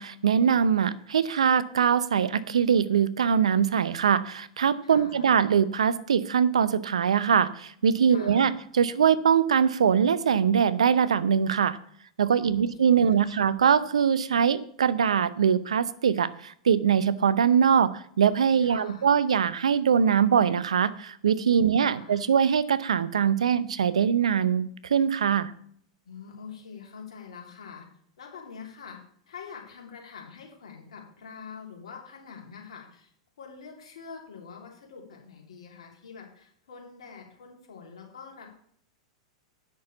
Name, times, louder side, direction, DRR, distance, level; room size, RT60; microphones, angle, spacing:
voice 1, 0.0-11.8 12.2-25.5, right 7 dB, 85° right, 16 dB, 0.7 m, -23 dB
voice 2, 4.8-5.3 8.1-8.5 12.4-13.4 18.6-19.1 21.6-22.2 26.0-27.9 28.2-29.0 29.3-33.1 33.4-38.5, left 6 dB, 75° left, 0 dB, 3.4 m, -45 dB
9.4 x 6.3 x 7.0 m, 0.63 s
hypercardioid pair, 105°, 3 cm